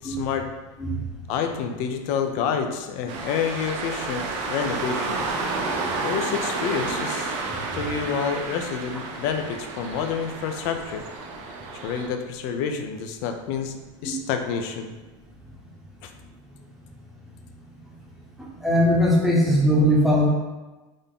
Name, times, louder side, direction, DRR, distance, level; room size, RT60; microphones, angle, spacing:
voice 1, 0.0-0.5 1.3-5.2 6.0-7.4 7.7-11.0 11.8-14.9 16.0-16.1, left 7 dB, 55° left, 6 dB, 0.4 m, -28 dB
sound 1, 3.1-12.1, right 3 dB, 45° right, 0.6 m, -31 dB
voice 2, 18.6-20.3, equal, ahead, -4 dB, 0.8 m, -19 dB
3.8 x 2.1 x 3.7 m, 1.2 s
supercardioid pair, 120°, 16 cm